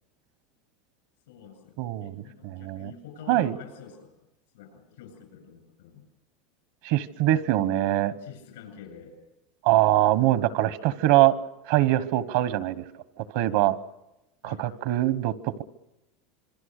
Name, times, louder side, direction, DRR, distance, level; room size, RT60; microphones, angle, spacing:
voice 1, 1.3-4.1 4.5-6.0 7.3-7.6 8.2-9.2 14.4-14.7, left 7 dB, 90° left, 6 dB, 7.5 m, -47 dB
voice 2, 1.8-2.9 3.3-3.5 6.8-8.1 9.6-11.4 11.7-12.8 13.2-13.8 14.4-15.6, right 14 dB, 65° right, 15 dB, 1.1 m, -23 dB
26.5 x 23.5 x 6.6 m, 0.92 s
supercardioid pair, 150°, 0 cm